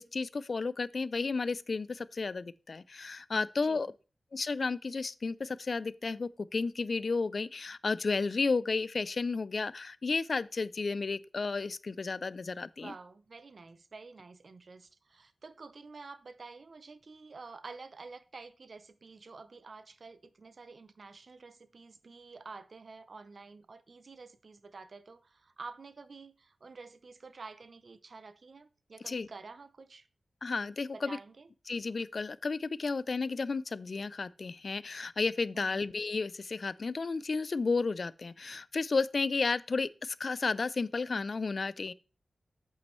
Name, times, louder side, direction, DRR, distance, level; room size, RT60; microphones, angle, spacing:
voice 1, 0.0-3.9 4.3-12.9 29.1-29.3 30.4-31.2 31.7-41.9, left 4 dB, 45° left, 0.4 m, -32 dB
voice 2, 12.8-30.1 30.9-31.5 35.5-35.8, right 4 dB, 50° right, 0.6 m, -49 dB
8.3 x 8.1 x 3.1 m
wide cardioid pair, 140°, 0 cm